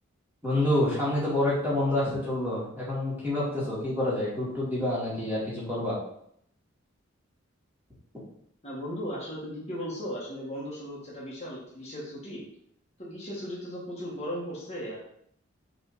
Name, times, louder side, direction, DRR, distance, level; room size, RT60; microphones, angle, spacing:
voice 1, 0.4-6.0, left 1 dB, 10° right, -8 dB, 2.2 m, -27 dB
voice 2, 8.6-12.4 13.0-15.0, equal, 30° left, -6 dB, 1.7 m, -37 dB
6.7 x 3.5 x 4.1 m, 0.70 s
head